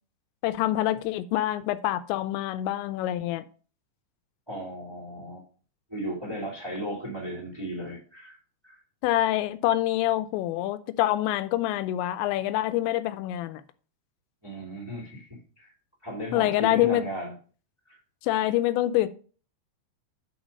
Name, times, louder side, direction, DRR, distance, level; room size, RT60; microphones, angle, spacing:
voice 1, 0.4-3.4 9.0-13.6 16.3-17.0 18.2-19.1, left 14 dB, 85° left, 2.8 m, -26 dB
voice 2, 4.5-5.4 5.9-8.4 8.6-8.8 14.4-15.7 16.0-17.3 17.8-18.0, equal, 10° right, 1.5 m, -36 dB
7.1 x 5.7 x 5.3 m
omnidirectional pair, 5.2 m